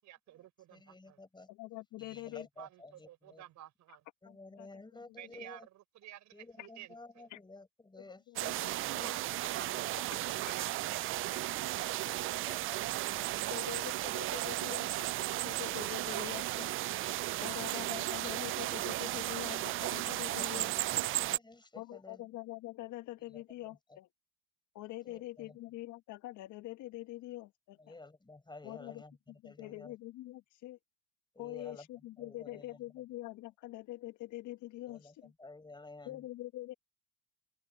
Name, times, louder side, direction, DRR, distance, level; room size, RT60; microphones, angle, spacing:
voice 1, 0.0-1.2 2.6-4.0 5.2-7.3 8.7-11.4 12.9-13.0, right 13 dB, 55° right, 5.1 m, -52 dB
voice 2, 0.7-1.5 2.0-3.4 4.2-5.7 6.3-8.5 9.7-9.8 10.1-10.2 10.7-10.9 12.0-12.9 13.1-13.6 14.6-14.9 15.9-16.3 17.2-17.5 19.6-19.7 20.3-22.2 23.3-24.0 25.0-25.6 27.8-29.9 31.3-31.9 32.2-32.8 34.9-36.3, left 2 dB, 15° left, 6.3 m, -53 dB
voice 3, 1.5-2.5 4.2-4.7 6.6-6.7 7.3-7.4 8.3-9.2 11.9-12.5 13.5-16.7 17.4-21.0 21.7-24.1 24.7-27.8 28.6-29.0 29.4-30.8 31.4-35.3 36.0-36.7, left 17 dB, 55° left, 1.3 m, -45 dB
sound 1, 8.4-21.4, right 16 dB, 40° right, 0.4 m, -35 dB
open air
hypercardioid pair, 85°, 35 cm